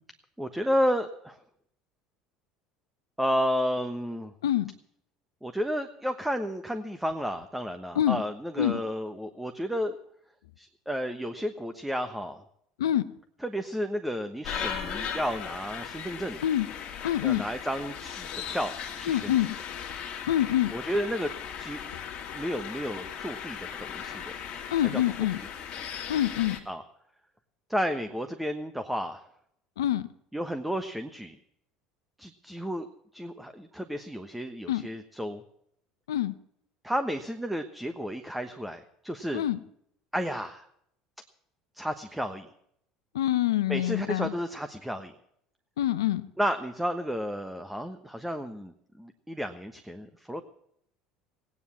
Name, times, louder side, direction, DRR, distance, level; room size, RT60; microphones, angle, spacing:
voice 1, 0.4-1.4 3.2-4.3 5.4-10.0 10.6-12.4 13.4-16.4 17.2-19.5 20.7-21.3 21.6-21.8 22.3-24.3 24.8-25.3 26.7-26.8 27.7-29.3 30.3-31.4 32.2-32.9 33.1-35.4 36.8-39.4 40.1-40.7 41.7-42.5 43.7-45.1 46.4-50.4, equal, 5° right, 7 dB, 1.1 m, -32 dB
sound 1, 14.4-26.6, left 8 dB, 50° left, 2.2 m, -38 dB
voice 2, 17.0-17.4 19.1-19.6 20.3-20.7 24.7-25.4 26.1-26.6 29.8-30.0 34.7-34.8 36.1-36.3 39.3-39.6 43.1-44.3 45.8-46.3, left 12 dB, 85° left, 14 dB, 0.7 m, -26 dB
17.0 x 9.7 x 7.2 m, 0.71 s
hypercardioid pair, 75°, 2 cm